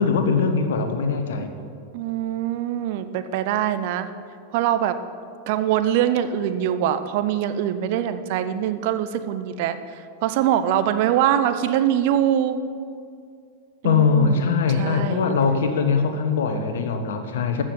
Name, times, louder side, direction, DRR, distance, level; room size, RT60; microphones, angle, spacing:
voice 1, 0.0-1.5 13.8-17.6, left 5 dB, 60° left, 7 dB, 1.2 m, -21 dB
voice 2, 1.9-4.1 4.5-5.0 5.5-9.8 10.2-12.6 13.8-15.3, right 10 dB, 50° right, 11 dB, 0.7 m, -23 dB
13.5 x 6.3 x 8.4 m, 2.4 s
figure-of-eight pair, 90°, 0 cm